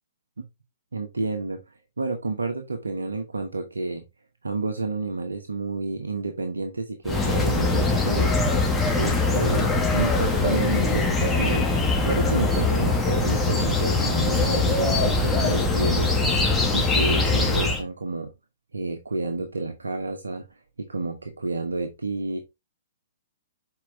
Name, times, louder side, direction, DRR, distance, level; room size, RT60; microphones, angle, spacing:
voice 1, 0.9-4.0 4.4-8.3 9.0-11.7 12.0-18.3 18.7-20.5 20.8-22.4, right 3 dB, 80° right, 1.1 m, -30 dB
sound 1, 7.0-17.8, left 3 dB, 5° left, 1.8 m, -22 dB
7.3 x 4.9 x 3.4 m
figure-of-eight pair, 115°, 0 cm